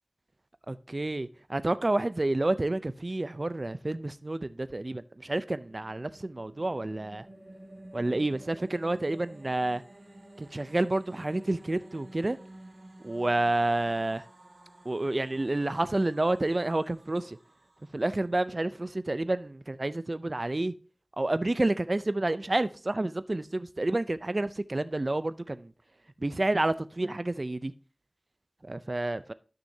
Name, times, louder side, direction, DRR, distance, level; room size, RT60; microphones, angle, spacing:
voice 1, 0.7-7.3 7.9-9.8 10.4-12.4 13.0-14.2 14.9-17.4 17.9-20.7 21.2-25.7 26.2-27.7 28.6-29.3, right 2 dB, 50° right, 0.4 m, -29 dB
sound 1, 5.5-18.7, right 1 dB, 80° right, 1.7 m, -52 dB
11.5 x 6.3 x 2.7 m
wide cardioid pair, 55°, 0 cm